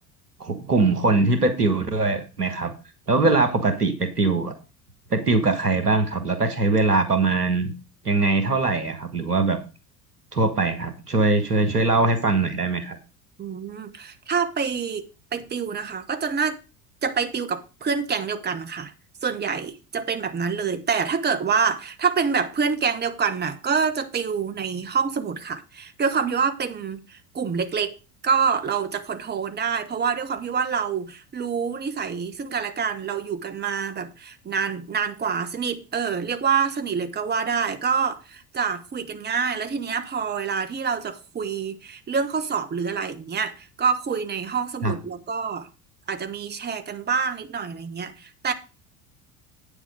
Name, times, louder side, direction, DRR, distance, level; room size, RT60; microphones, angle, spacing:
voice 1, 0.4-2.7 3.1-4.5 5.1-7.7 8.0-9.6 10.3-13.0 44.8-44.9, right 3 dB, 90° right, 1.5 m, -22 dB
voice 2, 13.4-16.6 17.0-18.9 19.2-27.9 28.2-45.7 46.1-48.5, right 6 dB, 20° right, 1.2 m, -26 dB
9.0 x 7.2 x 5.0 m
figure-of-eight pair, 65°, 45 cm